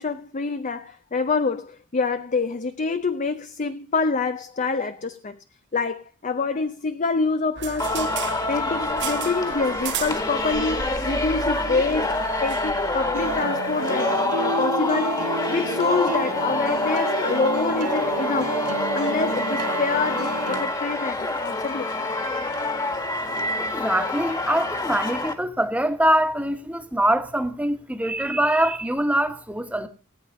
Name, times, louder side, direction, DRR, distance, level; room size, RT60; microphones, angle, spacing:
voice 1, 0.0-5.4 5.7-8.2 8.5-18.6 18.9-21.9, left 4 dB, 35° left, 0.6 m, -26 dB
sound 1, 7.6-13.4, right 6 dB, 55° right, 1.1 m, -35 dB
Singing, 7.8-25.3, left 2 dB, 15° left, 1.7 m, -26 dB
sound 2, 13.1-20.6, right 3 dB, 90° right, 2.0 m, -30 dB
voice 2, 23.6-29.9, right 1 dB, 5° right, 1.4 m, -23 dB
18.0 x 9.0 x 5.3 m
head